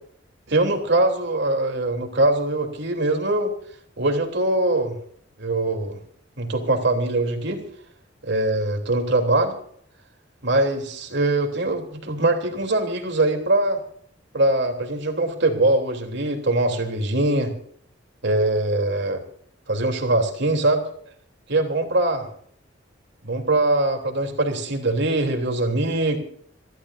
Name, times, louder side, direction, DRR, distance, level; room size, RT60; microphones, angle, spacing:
voice 1, 0.5-3.5 4.0-4.9 5.4-6.0 6.4-7.6 8.2-9.5 10.4-13.8 14.3-17.5 18.2-19.2 19.7-20.8 21.5-22.2 23.2-26.2, right 2 dB, 65° right, 4 dB, 3.1 m, -22 dB
27.5 x 13.0 x 2.6 m, 0.63 s
head